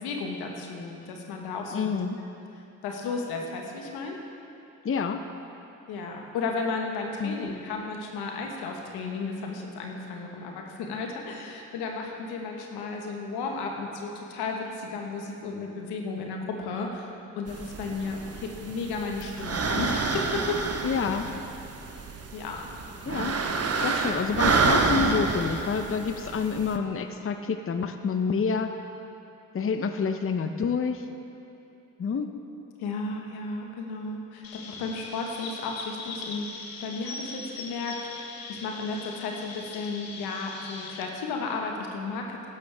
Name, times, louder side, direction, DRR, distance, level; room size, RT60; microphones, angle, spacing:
voice 1, 0.0-2.0 2.8-4.2 5.9-17.1 17.3-20.6 20.9-21.0 22.3-22.7 32.8-36.5 36.8-42.5, left 4 dB, 80° left, 1 dB, 1.5 m, -34 dB
voice 2, 1.7-2.2 4.8-5.2 7.2-7.4 20.8-21.3 23.0-23.3 23.8-28.7 29.5-31.1 32.0-32.3, left 5 dB, 35° left, 7 dB, 0.8 m, -28 dB
sound 1, 17.5-26.8, right 4 dB, 40° right, 1.1 m, -28 dB
Chirp tweet, 34.4-41.0, left 4 dB, 65° left, 1.4 m, -40 dB
15.5 x 11.5 x 3.5 m, 2.8 s
hypercardioid pair, 45°, 38 cm